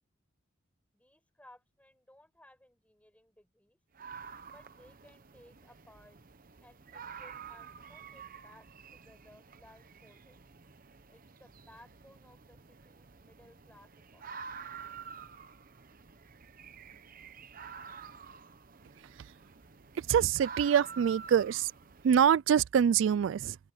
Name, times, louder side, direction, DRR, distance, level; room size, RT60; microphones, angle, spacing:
voice 1, 0.9-3.8 4.5-6.2 6.6-10.4 11.1-14.5, left 1 dB, 5° left, 6.2 m, -60 dB
sound 1, 3.9-22.3, right 6 dB, 45° right, 0.9 m, -49 dB
voice 2, 19.9-21.7 22.0-23.6, right 8 dB, 75° right, 0.3 m, -25 dB
open air
head